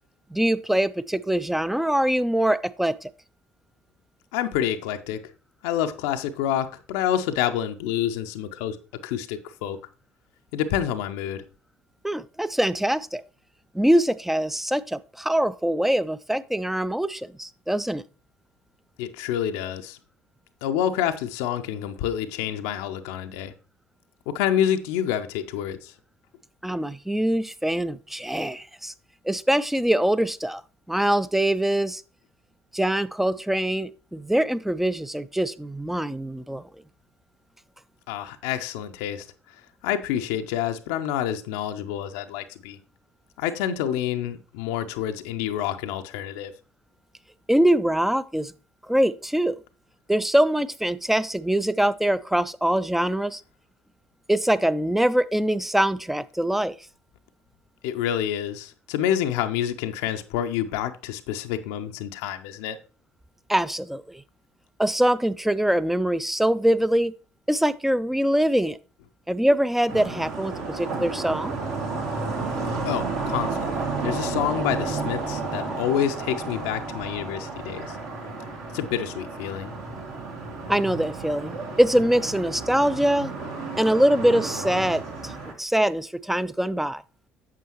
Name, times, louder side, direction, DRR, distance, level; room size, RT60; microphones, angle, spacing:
voice 1, 0.3-3.1 12.0-13.2 13.7-18.0 26.6-28.9 29.2-30.6 30.9-32.0 32.7-36.7 47.5-48.5 48.8-49.6 50.1-53.4 54.3-56.8 63.5-64.2 64.8-67.1 67.5-68.8 69.3-71.5 75.7-75.8 80.7-83.3 83.8-85.3 85.6-87.0, right 1 dB, 5° right, 0.4 m, -23 dB
voice 2, 4.3-5.3 5.6-8.8 9.0-9.8 10.5-11.4 19.0-20.0 20.6-23.5 24.3-25.9 38.1-42.8 43.4-46.5 57.8-62.8 72.8-78.0 78.7-79.7, left 10 dB, 65° left, 0.5 m, -28 dB
sound 1, 69.9-85.5, right 3 dB, 60° right, 2.0 m, -32 dB
8.4 x 6.9 x 2.9 m
figure-of-eight pair, 55°, 7 cm